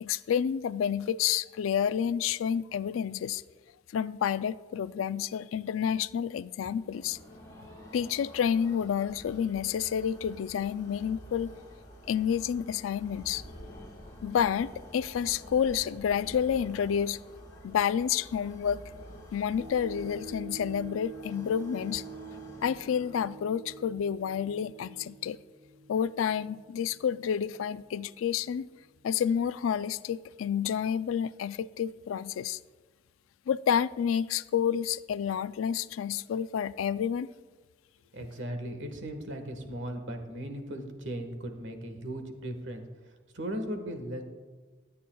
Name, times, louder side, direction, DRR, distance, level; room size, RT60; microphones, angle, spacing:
voice 1, 0.0-3.4 3.9-7.2 7.9-11.5 12.1-13.4 14.2-17.2 17.6-18.8 19.3-22.0 22.6-25.4 25.9-28.7 29.0-32.6 33.5-37.3, left 8 dB, 85° left, 16 dB, 0.3 m, -29 dB
sound 1, 6.6-23.6, equal, 20° left, 3.8 m, -49 dB
sound 2, 19.6-28.0 28.5-28.6, right 3 dB, 55° right, 2.7 m, -47 dB
voice 2, 38.1-42.8 43.3-44.2, right 1 dB, 70° right, 5 dB, 1.4 m, -37 dB
23.0 x 8.6 x 2.3 m, 1.4 s
head